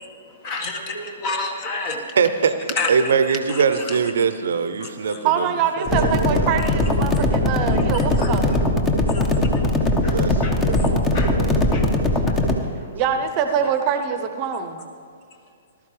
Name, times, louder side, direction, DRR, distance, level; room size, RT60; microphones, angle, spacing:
voice 1, 0.4-2.1 2.7-3.1 3.5-4.0 4.8-5.2 7.7-8.4 9.1-9.6 10.0-10.9 11.1-12.5 12.8-12.9, left 2 dB, 35° left, 3 dB, 1.7 m, -30 dB
voice 2, 2.1-5.5 5.9-6.5 10.0-12.1 12.5-12.9, right 6 dB, 65° right, 11 dB, 0.7 m, -23 dB
voice 3, 5.2-8.6 12.9-14.9, right 7 dB, 35° right, 7 dB, 0.9 m, -24 dB
sound 1, 5.9-12.5, left 2 dB, 15° left, 1.2 m, -20 dB
19.5 x 12.5 x 3.4 m, 2.2 s
figure-of-eight pair, 120°, 0 cm